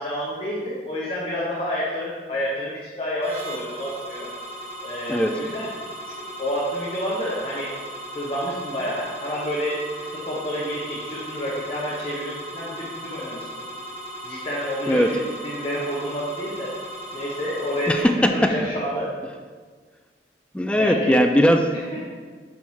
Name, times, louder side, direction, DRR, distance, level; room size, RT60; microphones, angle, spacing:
voice 1, 0.0-4.3 4.8-5.7 6.1-7.7 8.1-9.8 10.1-13.5 14.2-16.7 17.1-19.1 20.7-21.2 21.7-22.0, equal, 30° left, -6 dB, 0.9 m, -29 dB
sound 1, 3.2-18.0, right 1 dB, 35° right, 0.7 m, -37 dB
voice 2, 17.9-18.5 20.5-21.7, equal, 5° left, 5 dB, 0.3 m, -19 dB
4.5 x 4.5 x 5.5 m, 1.5 s
head